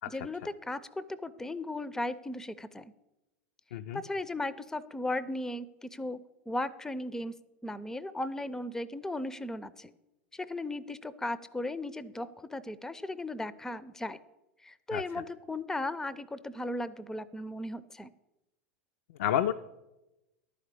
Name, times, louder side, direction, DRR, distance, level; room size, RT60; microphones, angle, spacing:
voice 1, 0.1-2.9 3.9-7.3 7.6-9.9 10.3-14.2 14.6-18.1, left 1 dB, 5° left, 16 dB, 0.5 m, -36 dB
voice 2, 3.7-4.0 14.9-15.0 19.2-19.5, left 11 dB, 65° left, 7 dB, 0.4 m, -29 dB
11.0 x 5.0 x 8.3 m, 0.98 s
hypercardioid pair, 90°, 7 cm